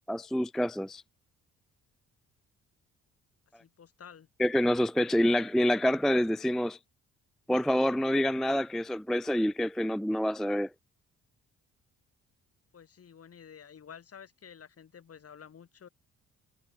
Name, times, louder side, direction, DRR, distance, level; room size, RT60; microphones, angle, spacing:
voice 1, 0.1-1.0 4.4-6.8 7.5-10.7, equal, ahead, 0.3 m, -27 dB
voice 2, 3.6-4.3 12.7-15.9, left 7 dB, 50° left, 7.7 m, -51 dB
cardioid pair, 90°, 30 cm